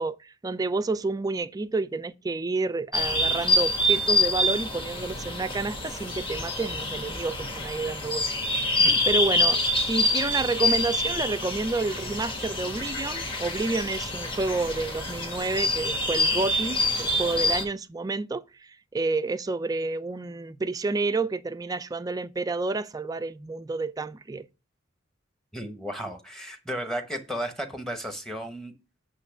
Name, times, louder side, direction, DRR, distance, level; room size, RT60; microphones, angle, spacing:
voice 1, 0.0-8.3 8.6-9.6 9.9-24.4, right 3 dB, 20° right, 0.3 m, -29 dB
sound 1, 2.9-17.6, left 1 dB, 25° left, 1.3 m, -26 dB
voice 2, 25.5-28.7, equal, ahead, 0.9 m, -34 dB
8.3 x 3.1 x 5.8 m
head